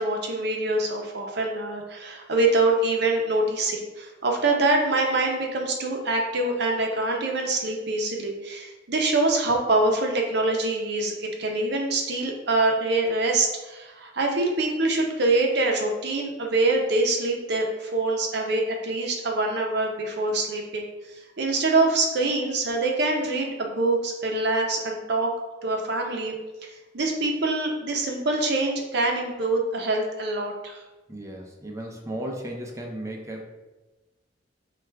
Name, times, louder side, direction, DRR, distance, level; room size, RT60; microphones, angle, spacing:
voice 1, 0.0-20.8 21.4-25.3 25.6-26.4 26.9-30.8, right 2 dB, 65° right, 1 dB, 0.7 m, -25 dB
voice 2, 31.1-33.4, right 1 dB, 15° right, 0 dB, 0.5 m, -35 dB
4.6 x 2.4 x 3.3 m, 1.1 s
head